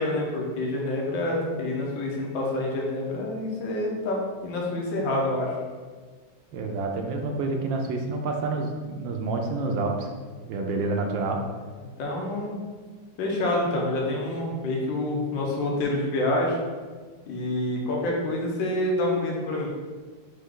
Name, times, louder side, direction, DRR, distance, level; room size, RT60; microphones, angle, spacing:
voice 1, 0.0-5.6 12.0-12.6 13.2-16.6 17.3-19.7, left 1 dB, 70° left, -1 dB, 1.5 m, -27 dB
voice 2, 6.5-10.1 10.5-11.4, right 3 dB, 75° right, 3 dB, 1.2 m, -28 dB
4.2 x 3.4 x 3.7 m, 1.5 s
omnidirectional pair, 2.2 m